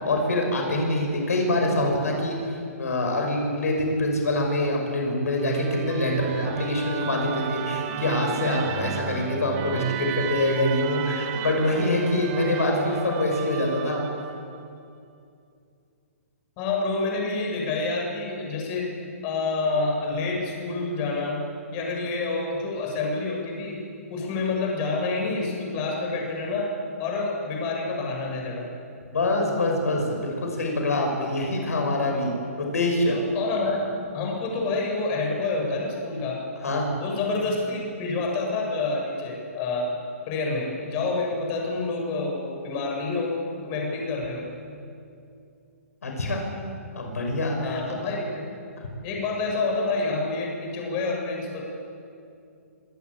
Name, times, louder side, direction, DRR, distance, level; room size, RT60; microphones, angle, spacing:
voice 1, 0.0-2.4 2.8-14.0 29.1-32.3 32.6-33.2 36.6-36.9 46.0-46.4 46.9-47.8, left 2 dB, 80° left, 1 dB, 6.1 m, -25 dB
Musical instrument, 5.4-14.6, right 10 dB, 35° right, 1.4 m, -32 dB
voice 2, 16.6-18.9 19.2-21.4 21.7-23.8 24.1-26.7 27.0-28.7 33.1-36.4 37.0-39.9 40.3-43.4 43.6-44.5 47.6-48.5 49.0-51.6, left 3 dB, 35° left, -1 dB, 7.4 m, -28 dB
26.0 x 17.5 x 8.6 m, 2.5 s
hypercardioid pair, 140°, 8 cm